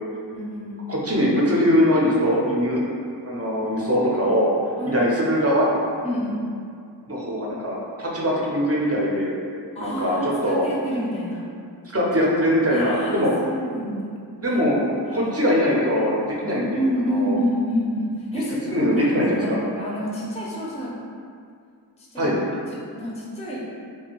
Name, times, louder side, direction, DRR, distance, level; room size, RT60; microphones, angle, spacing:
voice 1, 0.3-0.9 3.6-3.8 4.8-5.0 6.0-6.4 9.8-11.5 12.7-14.1 16.7-20.9 22.0-22.3 22.9-23.6, equal, 15° left, -5 dB, 0.5 m, -28 dB
voice 2, 0.9-2.8 3.2-4.5 4.8-5.7 7.1-9.4 9.8-10.7 11.9-13.3 13.8-14.0 14.4-14.8 15.1-16.8 17.0-17.4 18.7-19.6 22.2-22.4, equal, 35° right, -4 dB, 0.6 m, -21 dB
2.5 x 2.3 x 2.9 m, 2.3 s
wide cardioid pair, 50°, 41 cm